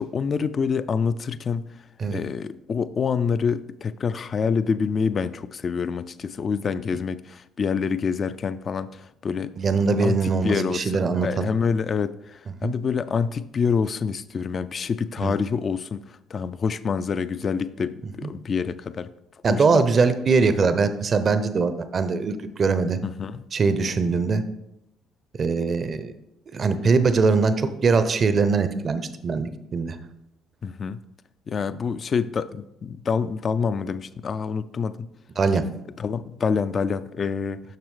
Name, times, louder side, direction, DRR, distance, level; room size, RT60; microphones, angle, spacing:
voice 1, 0.0-1.6 2.1-9.5 10.0-19.1 19.5-19.9 23.0-23.5 30.6-31.0 31.5-35.1 36.0-37.6, left 5 dB, 45° left, 15 dB, 0.3 m, -27 dB
voice 2, 9.6-11.5 12.6-12.7 15.2-15.4 19.4-23.0 23.5-24.4 25.4-26.1 26.5-30.0 35.4-35.6, right 4 dB, 40° right, 11 dB, 0.6 m, -22 dB
6.6 x 6.1 x 3.2 m, 0.83 s
hypercardioid pair, 50°, 0 cm